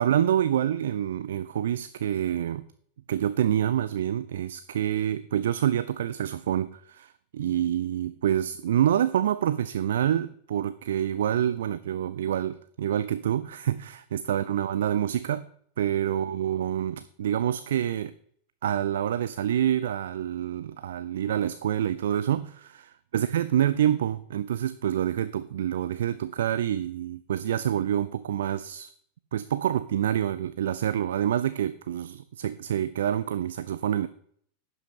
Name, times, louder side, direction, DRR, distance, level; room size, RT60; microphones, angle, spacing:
voice 1, 0.0-2.7 3.1-15.5 15.8-18.1 18.6-28.9 29.3-34.1, right 10 dB, 60° right, 14 dB, 0.4 m, -27 dB
11.0 x 5.6 x 5.6 m, 0.63 s
figure-of-eight pair, 90°, 0 cm